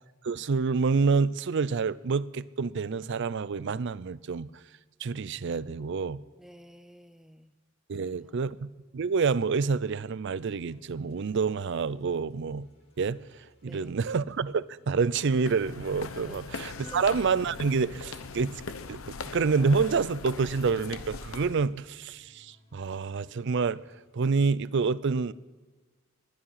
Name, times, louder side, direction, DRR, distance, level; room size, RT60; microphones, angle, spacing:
voice 1, 0.2-4.5 5.0-6.2 7.9-12.7 13.0-18.6 18.9-23.8 24.1-25.3, right 5 dB, 60° right, 0.5 m, -28 dB
voice 2, 6.4-7.5 7.9-8.4 13.6-13.9 16.2-16.4 16.8-17.0, equal, ahead, 0.5 m, -50 dB
sound 1, 10.4-24.1, equal, 30° left, 2.0 m, -63 dB
sound 2, 15.1-21.7, left 4 dB, 80° left, 1.0 m, -40 dB
20.5 x 11.5 x 5.7 m
head